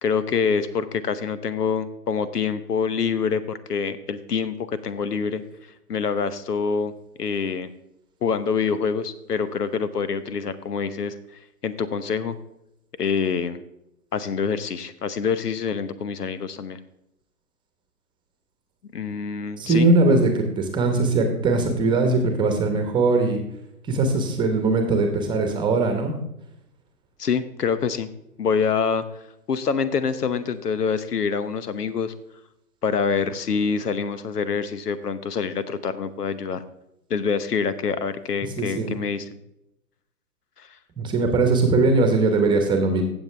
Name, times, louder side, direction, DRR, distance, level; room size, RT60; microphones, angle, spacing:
voice 1, 0.0-5.4 5.9-6.9 7.2-7.7 8.2-12.4 13.0-13.6 14.1-16.8 18.9-19.9 27.2-28.1 28.4-29.0 29.5-32.1 32.8-36.6 37.1-39.3 40.6-40.8 41.2-41.3, left 6 dB, 80° left, 14 dB, 1.0 m, -26 dB
voice 2, 19.6-23.4 23.9-26.1 38.6-38.9 41.0-43.0, right 3 dB, 10° right, 4 dB, 1.1 m, -20 dB
16.0 x 7.3 x 3.4 m, 0.83 s
hypercardioid pair, 135°, 46 cm